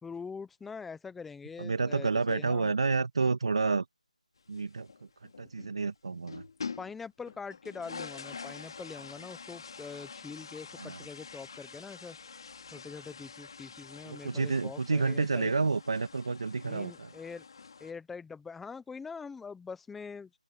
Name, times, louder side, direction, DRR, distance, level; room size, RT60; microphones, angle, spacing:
voice 1, 0.0-2.7 6.8-12.2 12.7-15.5 16.6-17.4 17.8-20.3, left 5 dB, 5° left, 0.8 m, -43 dB
voice 2, 1.6-3.8 4.5-4.9 5.4-6.4 10.8-11.0 14.1-17.1, right 4 dB, 50° right, 2.1 m, -29 dB
sound 1, 4.4-5.8 6.1-7.0 7.3-17.9, left 5 dB, 40° left, 2.7 m, -46 dB
open air
figure-of-eight pair, 170°, 4 cm